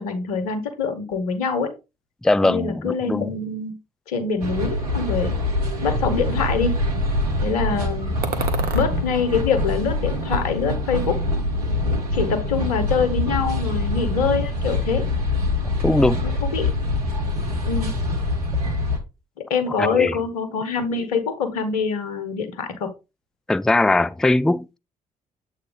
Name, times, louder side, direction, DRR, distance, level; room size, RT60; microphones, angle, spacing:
voice 1, 0.0-1.7 2.4-3.8 4.1-5.3 5.8-6.8 7.4-8.1 8.7-11.2 12.1-15.0 16.2-16.7 17.7-17.9 19.4-22.9, left 5 dB, 85° left, 1.2 m, -24 dB
voice 2, 2.2-3.3 15.8-16.3 19.8-20.2 23.5-24.8, left 2 dB, 5° left, 0.4 m, -20 dB
sound 1, 4.4-19.0, left 2 dB, 90° right, 1.0 m, -24 dB
sound 2, 8.2-8.9 9.5-10.4 10.7-11.5, right 5 dB, 55° right, 1.3 m, -34 dB
8.0 x 3.0 x 5.2 m
hypercardioid pair, 45°, 19 cm